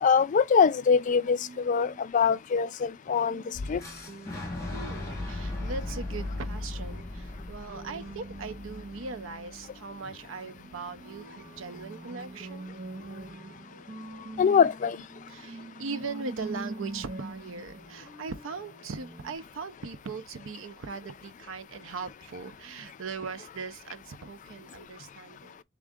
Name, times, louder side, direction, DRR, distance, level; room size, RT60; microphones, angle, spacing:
voice 1, 0.0-3.4 3.7-3.8 14.4-15.0, left 6 dB, 40° left, 0.3 m, -23 dB
sound 1, 0.9-2.0 3.1-19.4, right 2 dB, 45° right, 1.5 m, -45 dB
Boom, 3.8-9.7, left 2 dB, 15° left, 1.8 m, -37 dB
voice 2, 4.7-12.7 15.3-25.6, right 4 dB, 70° right, 0.6 m, -39 dB
3.6 x 3.6 x 3.5 m
head